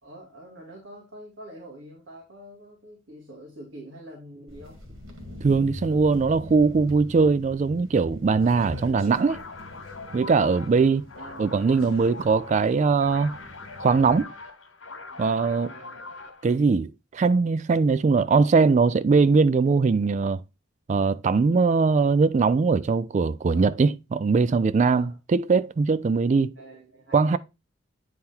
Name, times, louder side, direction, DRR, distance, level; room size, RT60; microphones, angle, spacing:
voice 1, 0.0-4.8 11.2-11.5 15.7-16.0 23.5-23.8 24.8-25.2 26.6-27.4, right 1 dB, 60° right, 2.4 m, -45 dB
sound 1, 4.5-14.2, left 1 dB, 85° right, 2.5 m, -42 dB
voice 2, 5.4-9.4 10.1-11.0 11.4-13.4 13.8-14.3 15.2-15.7 16.4-20.4 20.9-26.5 27.1-27.4, right 4 dB, 35° right, 0.3 m, -21 dB
sound 2, 9.1-16.5, left 3 dB, 75° left, 1.7 m, -42 dB
9.2 x 3.8 x 4.3 m
head